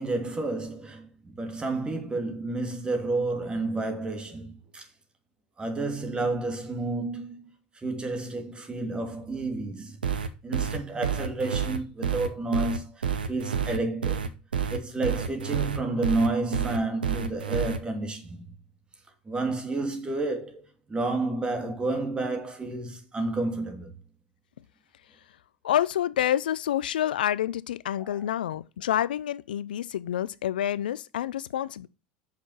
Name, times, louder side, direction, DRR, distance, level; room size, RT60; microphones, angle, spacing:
voice 1, 0.0-4.9 5.6-7.5 7.7-10.0 10.4-14.3 14.7-18.5 19.3-24.0 28.0-28.3, right 2 dB, 20° right, 2.6 m, -30 dB
sound 1, 10.0-17.8, right 7 dB, 90° right, 0.9 m, -28 dB
voice 2, 25.6-31.9, left 11 dB, 80° left, 0.5 m, -28 dB
6.6 x 5.9 x 5.5 m
hypercardioid pair, 85°, 5 cm